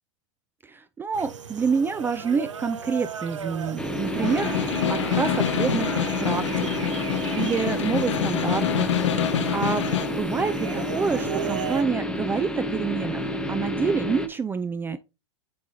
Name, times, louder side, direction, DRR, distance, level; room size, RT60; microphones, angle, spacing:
voice 1, 0.6-6.7 7.0-9.8 10.2-15.0, right 5 dB, 15° right, 0.3 m, -28 dB
sound 1, 1.1-11.8, right 7 dB, 85° right, 0.9 m, -36 dB
sound 2, 3.8-14.3, left 1 dB, 5° left, 0.8 m, -30 dB
Snare drum, 4.1-10.2, left 9 dB, 75° left, 0.9 m, -27 dB
8.5 x 4.8 x 2.7 m
hypercardioid pair, 105°, 15 cm